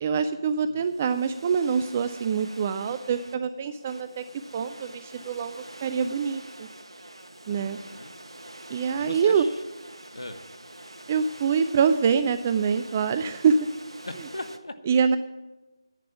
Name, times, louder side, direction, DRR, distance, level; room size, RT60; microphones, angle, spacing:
voice 1, 0.0-4.2 4.5-5.6 5.8-6.7 7.5-7.8 8.7-9.5 11.1-13.6 14.9-15.2, right 6 dB, 25° right, 11 dB, 0.4 m, -25 dB
sound 1, 0.8-14.6, right 1 dB, 80° right, 1.1 m, -46 dB
voice 2, 7.5-8.1 9.0-9.5 10.1-10.4 14.0-14.8, left 2 dB, 75° left, 9 dB, 1.2 m, -40 dB
10.5 x 8.6 x 6.0 m, 1.1 s
figure-of-eight pair, 155°, 3 cm